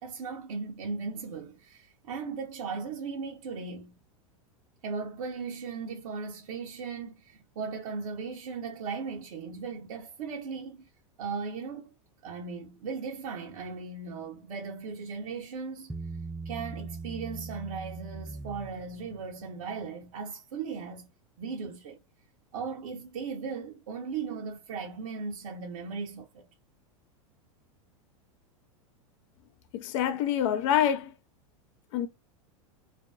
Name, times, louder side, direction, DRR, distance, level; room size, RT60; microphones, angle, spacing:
voice 1, 0.0-4.0 4.8-10.9 11.2-11.9 12.2-15.9 16.4-21.1 21.4-22.0 22.5-26.5, right 5 dB, 75° right, 0.7 m, -37 dB
Bass guitar, 15.9-19.3, right 3 dB, 5° right, 0.3 m, -40 dB
voice 2, 29.7-31.1 31.9-32.1, left 10 dB, 60° left, 0.5 m, -26 dB
2.5 x 2.2 x 2.2 m
hypercardioid pair, 105°, 18 cm